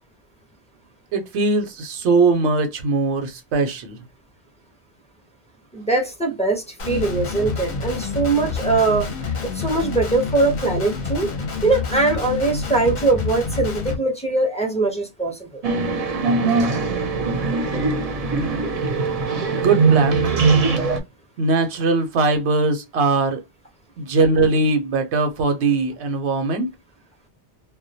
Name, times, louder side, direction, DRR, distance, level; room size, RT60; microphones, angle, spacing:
voice 1, 1.1-4.0 19.5-20.2 21.4-23.4 24.0-26.7, right 3 dB, 85° right, 0.9 m, -20 dB
voice 2, 5.7-11.3 11.6-15.6, right 3 dB, 10° left, 0.4 m, -22 dB
Guitar, 6.8-14.0, left 5 dB, 50° left, 0.7 m, -28 dB
sound 1, 15.6-21.0, right 4 dB, 45° right, 0.5 m, -20 dB
2.2 x 2.1 x 2.6 m
omnidirectional pair, 1.1 m